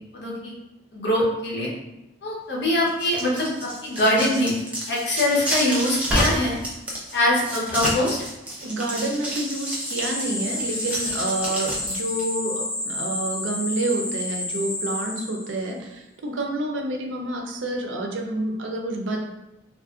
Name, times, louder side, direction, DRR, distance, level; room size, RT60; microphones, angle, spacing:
voice 1, 0.1-0.5 0.9-1.7 2.2-4.5 4.9-6.6 7.1-8.2, left 1 dB, 65° left, -4 dB, 0.9 m, -23 dB
sound 1, 2.9-12.2, equal, 10° right, 0.5 m, -29 dB
voice 2, 8.6-19.2, right 2 dB, 80° right, 2 dB, 0.5 m, -28 dB
sound 2, 9.2-15.7, left 2 dB, 40° left, 1.2 m, -31 dB
3.3 x 2.5 x 2.4 m, 0.93 s
head